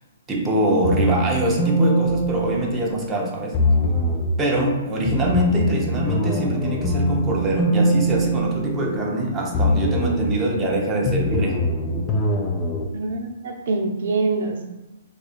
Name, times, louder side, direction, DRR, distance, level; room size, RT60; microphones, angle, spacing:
voice 1, 0.3-3.6 4.4-11.6, right 1 dB, 15° right, -2 dB, 0.8 m, -23 dB
sound 1, 0.8-3.1 3.5-4.4 5.0-9.2 9.5-10.4 11.0-12.8, equal, 20° left, 0.5 m, -22 dB
voice 2, 12.9-14.6, right 3 dB, 60° right, 0 dB, 0.8 m, -25 dB
2.7 x 2.4 x 4.2 m, 1.0 s
hypercardioid pair, 125°, 0 cm